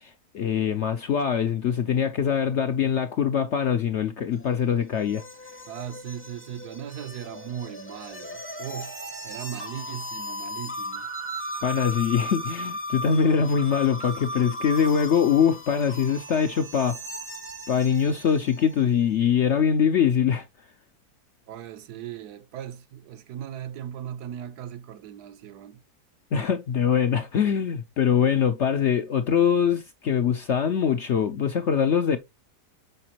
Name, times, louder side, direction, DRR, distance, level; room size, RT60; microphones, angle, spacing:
voice 1, 0.0-5.2 11.6-17.0 17.7-20.5 26.3-32.2, left 7 dB, 65° left, 0.7 m, -23 dB
sound 1, 4.3-18.9, equal, 15° left, 0.5 m, -37 dB
voice 2, 5.7-11.1 21.5-25.8, right 10 dB, 75° right, 1.2 m, -38 dB
6.7 x 5.0 x 2.9 m
omnidirectional pair, 1.8 m